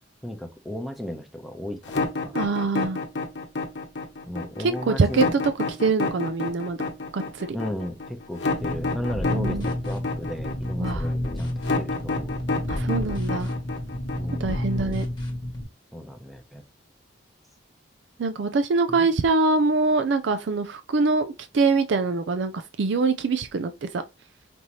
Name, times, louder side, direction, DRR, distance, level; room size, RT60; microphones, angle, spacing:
voice 1, 0.2-2.3 4.3-5.4 7.5-12.8 14.1-14.6 15.9-16.6 18.9-19.1, left 1 dB, ahead, 0.7 m, -35 dB
sound 1, 1.9-14.8, left 3 dB, 65° left, 0.9 m, -29 dB
voice 2, 2.3-3.0 4.9-5.4 5.8-6.8 7.1-7.6 9.3-9.7 10.8-11.0 12.7-13.5 14.4-15.0 18.2-23.9, right 3 dB, 70° right, 0.4 m, -24 dB
sound 2, 8.6-15.6, left 1 dB, 25° left, 1.2 m, -30 dB
5.1 x 2.7 x 3.0 m
head